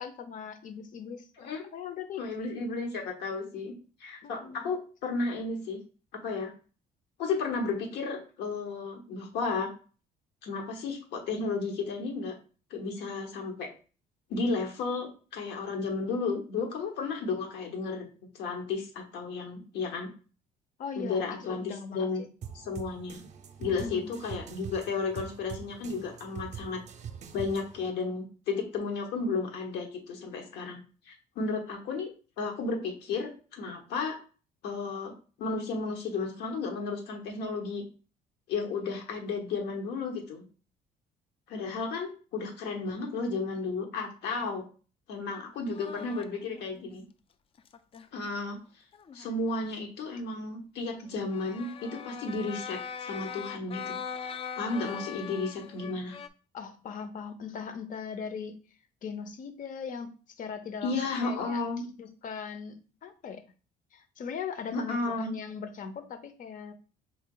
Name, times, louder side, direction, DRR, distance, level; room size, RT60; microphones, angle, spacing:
voice 1, 0.0-2.2 4.2-4.6 20.8-22.1 23.7-24.1 41.5-41.8 56.5-58.6 59.0-61.6 62.0-63.4 63.9-66.7, left 6 dB, 50° left, 9 dB, 0.8 m, -40 dB
voice 2, 2.2-3.7 4.0-5.8 6.1-6.5 7.2-9.7 10.4-12.3 12.7-13.7 14.3-18.1 18.3-20.1 21.0-22.2 22.5-23.2 23.6-26.8 27.3-30.8 31.1-32.1 32.4-34.2 34.6-35.1 35.4-37.8 38.5-40.4 41.5-44.6 45.1-47.0 48.1-48.6 49.1-53.9 54.6-56.2 60.8-61.8 64.7-65.3, left 4 dB, 80° left, 3 dB, 1.2 m, -33 dB
sound 1, 22.4-27.9, right 7 dB, 45° right, 0.6 m, -43 dB
sound 2, 45.7-46.8 47.6-48.1 48.9-49.6 51.3-56.3, left 7 dB, 35° left, 0.4 m, -41 dB
4.6 x 2.8 x 3.8 m, 0.37 s
cardioid pair, 110°, 17 cm